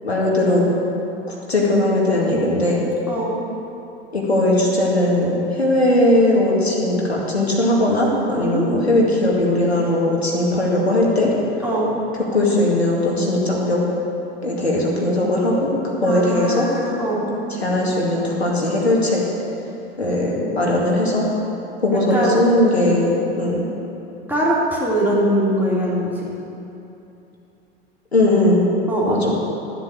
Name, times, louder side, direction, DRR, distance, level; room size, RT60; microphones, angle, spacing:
voice 1, 0.0-0.6 1.3-2.8 4.1-11.3 12.3-13.8 14.4-15.7 16.0-16.7 17.6-19.2 20.0-21.3 21.8-23.6 28.1-28.7 29.1-29.3, left 1 dB, 85° left, -3 dB, 2.3 m, -19 dB
voice 2, 8.3-8.7 11.6-12.0 16.0-17.3 17.6-17.7 21.9-22.4 24.3-26.3 28.9-29.2, right 1 dB, 5° right, -6 dB, 2.9 m, -22 dB
13.0 x 8.2 x 6.5 m, 2.8 s
figure-of-eight pair, 85°, 31 cm